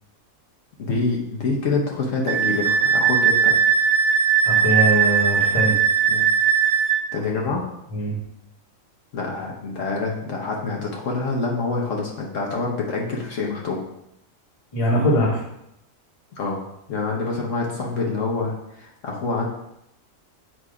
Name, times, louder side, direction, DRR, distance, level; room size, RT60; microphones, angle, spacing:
voice 1, 0.8-3.5 6.1-6.3 7.1-7.6 9.1-13.8 16.4-16.6 16.9-19.5, left 3 dB, 70° left, -1 dB, 1.2 m, -26 dB
Wind instrument woodwind instrument, 2.3-7.0, right 7 dB, 45° right, 0.4 m, -19 dB
voice 2, 4.4-5.8 7.9-8.2 14.7-15.4, equal, 25° left, -3 dB, 1.2 m, -21 dB
7.5 x 2.7 x 4.8 m, 0.81 s
omnidirectional pair, 1.4 m